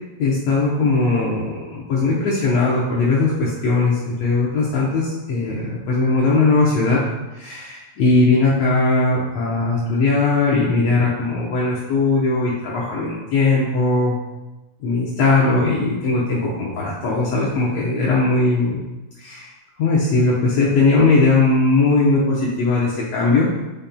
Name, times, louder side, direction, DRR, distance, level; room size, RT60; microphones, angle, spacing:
voice 1, 0.2-7.0 7.4-14.1 14.8-18.8 19.2-19.5 19.8-23.5, left 3 dB, 75° left, -5 dB, 1.5 m, -19 dB
10.0 x 5.4 x 2.3 m, 1.1 s
omnidirectional pair, 4.3 m